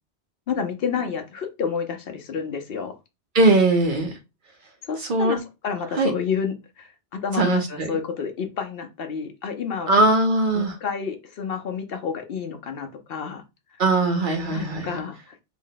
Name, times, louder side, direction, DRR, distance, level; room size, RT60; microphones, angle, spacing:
voice 1, 0.5-3.0 4.8-9.9 10.5-13.4 14.5-15.2, left 6 dB, 60° left, 0.8 m, -30 dB
voice 2, 3.3-4.2 5.0-5.4 5.9-6.1 7.3-7.9 9.9-10.8 13.8-15.0, right 2 dB, 50° right, 0.8 m, -20 dB
3.5 x 2.1 x 3.8 m
omnidirectional pair, 1.2 m